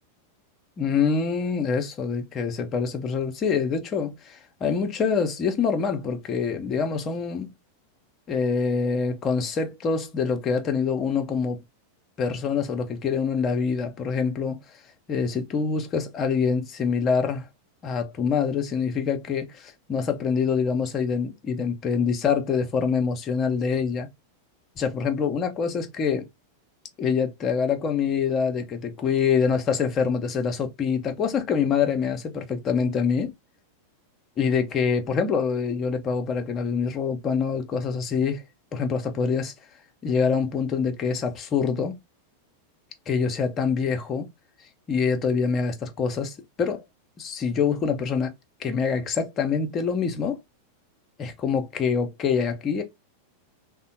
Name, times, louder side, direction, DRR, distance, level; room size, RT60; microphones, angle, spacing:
voice 1, 0.8-7.5 8.3-11.6 12.2-14.6 15.1-17.4 17.8-24.1 24.8-26.2 27.0-33.3 34.4-38.4 38.7-39.5 40.0-42.0 43.1-44.3 44.9-46.8 47.2-48.3 48.6-50.4 51.2-52.8, left 6 dB, 30° left, 0.7 m, -25 dB
3.5 x 2.1 x 2.6 m
figure-of-eight pair, 90°, 0 cm